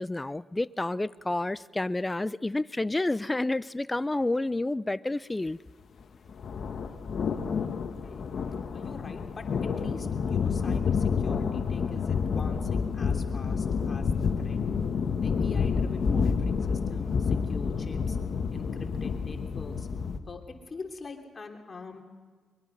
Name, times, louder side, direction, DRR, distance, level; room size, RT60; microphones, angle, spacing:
voice 1, 0.0-5.6, left 2 dB, 20° left, 0.6 m, -29 dB
sound 1, 6.3-20.2, left 6 dB, 60° left, 1.4 m, -29 dB
voice 2, 8.7-9.5 9.8-14.1 14.4-14.6 15.2-18.2 18.5-19.9 20.3-20.4 20.7-22.0, left 4 dB, 40° left, 3.0 m, -43 dB
23.5 x 22.0 x 5.6 m
supercardioid pair, 50°, 0 cm